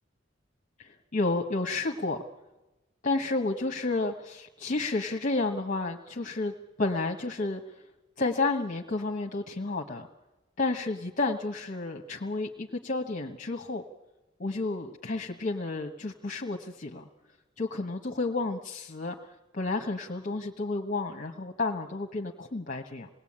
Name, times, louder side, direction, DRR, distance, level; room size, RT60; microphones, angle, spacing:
voice 1, 0.8-2.2 3.0-7.8 8.2-10.1 10.6-13.8 14.4-17.0 17.6-19.2 19.5-23.1, left 3 dB, 45° left, 2 dB, 1.3 m, -31 dB
28.0 x 19.5 x 8.8 m, 1.1 s
head